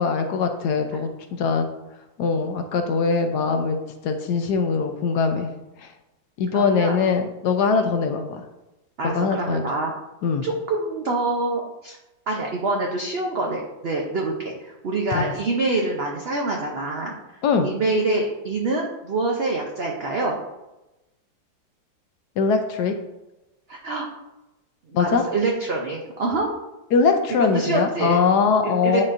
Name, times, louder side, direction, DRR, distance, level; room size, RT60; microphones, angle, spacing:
voice 1, 0.0-1.7 2.2-3.8 4.0-5.5 6.4-8.4 9.0-9.6 10.2-10.5 15.1-15.3 17.4-17.7 22.4-22.9 24.9-25.2 26.9-29.0, left 5 dB, 70° left, 6 dB, 1.1 m, -22 dB
voice 2, 6.5-7.0 7.7-7.9 9.0-9.9 10.4-12.0 12.3-17.2 17.6-20.4 23.7-24.1 24.9-26.5 27.5-28.2 28.6-29.0, right 2 dB, 60° right, 0 dB, 0.6 m, -26 dB
9.7 x 4.3 x 2.5 m, 0.98 s
omnidirectional pair, 1.9 m